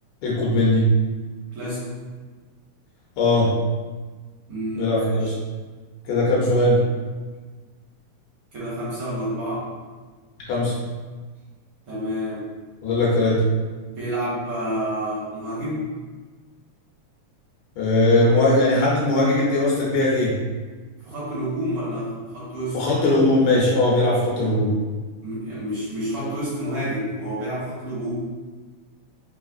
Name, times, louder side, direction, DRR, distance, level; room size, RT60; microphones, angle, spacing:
voice 1, 0.2-0.8 3.2-3.5 4.8-5.3 6.1-6.8 10.5-10.8 12.8-13.4 17.8-20.3 22.7-24.7, left 2 dB, 75° left, -5 dB, 2.0 m, -19 dB
voice 2, 1.5-1.8 4.5-5.3 8.5-9.7 11.8-12.4 13.8-15.9 21.1-22.8 25.2-28.1, equal, 55° right, -10 dB, 2.1 m, -29 dB
5.0 x 3.3 x 2.4 m, 1.4 s
omnidirectional pair, 3.4 m